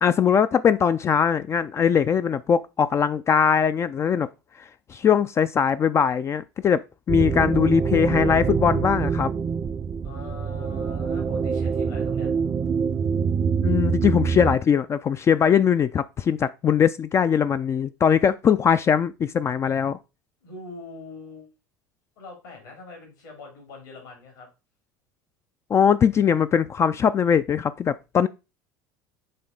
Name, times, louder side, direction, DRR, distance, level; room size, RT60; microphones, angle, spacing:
voice 1, 0.0-4.3 4.9-6.8 7.1-9.3 13.6-20.0 25.7-28.3, left 7 dB, 25° left, 0.3 m, -21 dB
sound 1, 7.1-14.6, right 6 dB, 25° right, 0.5 m, -25 dB
voice 2, 10.0-12.3 20.4-21.5 22.2-24.5, left 3 dB, 70° left, 2.8 m, -42 dB
7.6 x 3.4 x 3.9 m
figure-of-eight pair, 70°, 10 cm